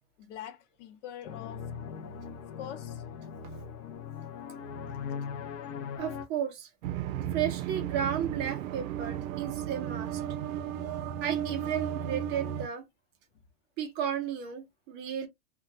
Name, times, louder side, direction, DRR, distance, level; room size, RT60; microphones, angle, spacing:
voice 1, 0.2-1.7 2.6-3.0 5.1-5.2, left 10 dB, 65° left, 0.7 m, -44 dB
sound 1, 1.2-6.3, left 6 dB, 35° left, 0.4 m, -40 dB
voice 2, 6.0-6.7 7.3-10.2 11.2-12.8 13.8-15.3, right 9 dB, 30° right, 0.5 m, -33 dB
sound 2, 6.8-12.7, right 10 dB, 85° right, 0.5 m, -34 dB
3.0 x 2.2 x 2.6 m
supercardioid pair, 150°, 39 cm